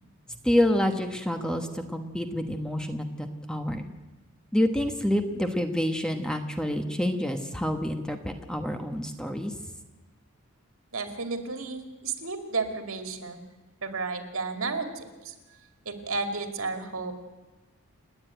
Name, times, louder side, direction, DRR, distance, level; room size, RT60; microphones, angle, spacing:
voice 1, 0.4-3.8 4.5-9.6, left 1 dB, 5° left, 5 dB, 1.1 m, -28 dB
voice 2, 10.9-13.4 13.8-15.3 15.8-17.2, right 4 dB, 65° right, 6 dB, 2.4 m, -32 dB
29.5 x 10.0 x 9.1 m, 1.2 s
head